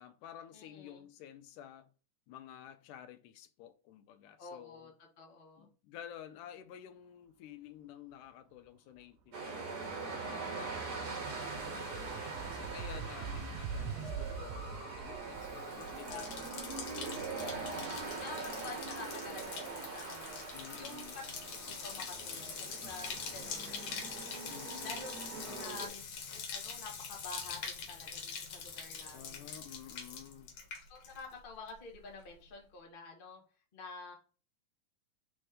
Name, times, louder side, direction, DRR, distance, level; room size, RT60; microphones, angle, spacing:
voice 1, 0.0-1.9 2.3-4.9 5.6-9.6 10.0-11.3 11.9-16.3 20.5-21.2 24.5-25.1 25.4-25.9 29.1-30.6, left 10 dB, 80° left, 2.1 m, -52 dB
voice 2, 0.5-1.0 4.4-4.9 5.2-5.7 11.7-12.4 16.1-16.7 17.4-20.3 20.7-21.2 21.6-23.8 24.8-25.1 25.6-29.5 30.9-33.4 33.7-34.1, left 3 dB, 45° left, 0.7 m, -49 dB
sound 1, 9.3-25.9, right 3 dB, 45° right, 1.3 m, -42 dB
sound 2, 10.2-18.8, right 6 dB, 75° right, 1.7 m, -45 dB
Bathtub (filling or washing), 15.3-31.4 31.7-32.2, left 6 dB, 60° left, 2.0 m, -44 dB
4.4 x 4.3 x 4.9 m
omnidirectional pair, 3.7 m